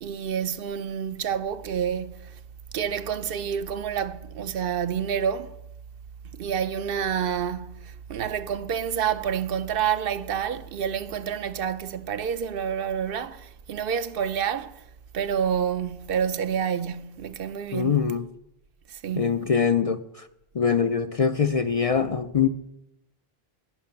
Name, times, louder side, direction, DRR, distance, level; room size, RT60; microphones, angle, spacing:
voice 1, 0.0-2.4 2.7-5.5 6.3-14.8 15.1-18.0 18.9-19.5, right 8 dB, 65° right, 0.8 m, -28 dB
voice 2, 17.7-18.2 19.2-20.3 20.5-22.5, left 6 dB, 50° left, 0.4 m, -23 dB
11.0 x 10.5 x 5.7 m
omnidirectional pair, 1.0 m